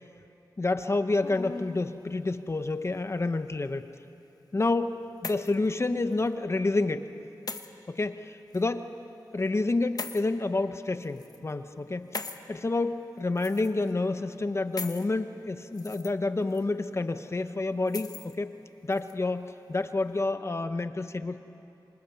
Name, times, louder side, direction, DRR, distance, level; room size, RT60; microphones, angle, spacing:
voice 1, 0.6-3.8 4.5-7.1 7.9-8.9 9.3-12.2 12.5-18.5 18.8-21.4, left 2 dB, 35° left, 9 dB, 0.9 m, -29 dB
sound 1, 1.2-1.8 2.8-3.5 4.7-5.7 6.1-6.3 7.5-7.7 8.5-8.6 10.0-10.2 11.0-11.4 12.1-12.4 13.4-13.9 14.8-15.1 15.6-16.1 16.5-16.6 17.9-18.4 18.9-19.1, left 4 dB, 55° left, 1.2 m, -39 dB
28.5 x 25.0 x 7.0 m, 2.8 s
wide cardioid pair, 110°, 8 cm